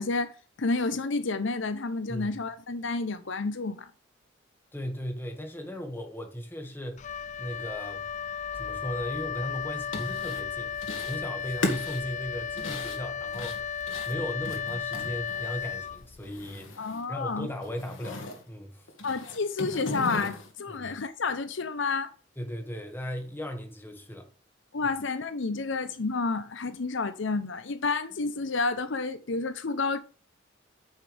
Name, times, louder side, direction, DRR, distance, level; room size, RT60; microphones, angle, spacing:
voice 1, 0.0-3.9 16.8-17.5 19.0-22.1 24.7-30.0, left 3 dB, 70° left, 0.8 m, -30 dB
voice 2, 4.7-7.1 7.4-8.0 8.6-13.8 14.0-18.9 20.7-20.9 22.4-24.3 24.8-24.9, equal, 10° left, 1.8 m, -37 dB
Wind instrument woodwind instrument, 7.0-16.4, left 7 dB, 40° left, 0.4 m, -35 dB
sound 1, 9.6-10.4 10.8-11.2 11.5-15.7 16.0-17.0 17.3-18.4 18.9-20.5, left 2 dB, 85° left, 2.2 m, -37 dB
9.6 x 6.5 x 3.4 m
head